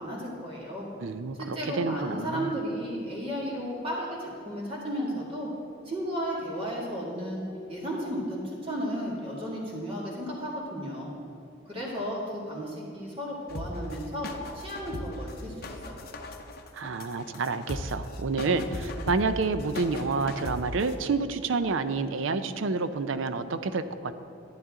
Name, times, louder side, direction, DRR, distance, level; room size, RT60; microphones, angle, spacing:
voice 1, 0.0-0.9 1.4-5.5 5.9-7.4 7.7-11.1 11.7-14.3 14.5-16.1, equal, 30° right, -4 dB, 2.2 m, -34 dB
voice 2, 1.0-2.6 16.7-24.1, right 4 dB, 85° right, 11 dB, 0.5 m, -29 dB
sound 1, 13.5-21.0, left 1 dB, 50° left, 0.7 m, -38 dB
11.0 x 10.5 x 3.7 m, 2.4 s
head